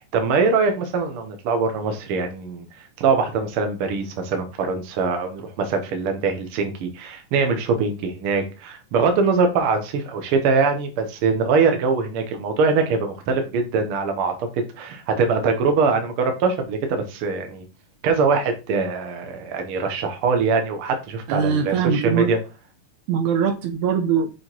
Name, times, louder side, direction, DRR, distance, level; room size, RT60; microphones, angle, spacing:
voice 1, 0.1-14.3 14.8-17.6 18.0-22.4, right 4 dB, 60° right, 1.6 m, -22 dB
voice 2, 21.3-22.3 23.1-24.3, right 7 dB, 75° right, 2.0 m, -22 dB
6.6 x 3.6 x 4.5 m
omnidirectional pair, 3.6 m